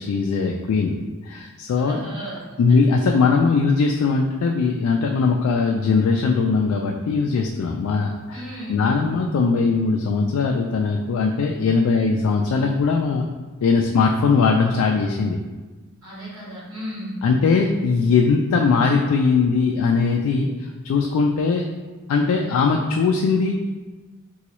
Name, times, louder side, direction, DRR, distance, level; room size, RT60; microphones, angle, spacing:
voice 1, 0.0-2.0 2.6-8.4 8.7-13.3 13.6-15.4 17.2-21.6 22.1-23.5, left 4 dB, 85° left, 2 dB, 0.3 m, -20 dB
voice 2, 1.8-2.8 8.3-8.9 16.0-17.2, right 1 dB, 70° right, -7 dB, 1.4 m, -35 dB
3.9 x 2.3 x 2.9 m, 1.3 s
head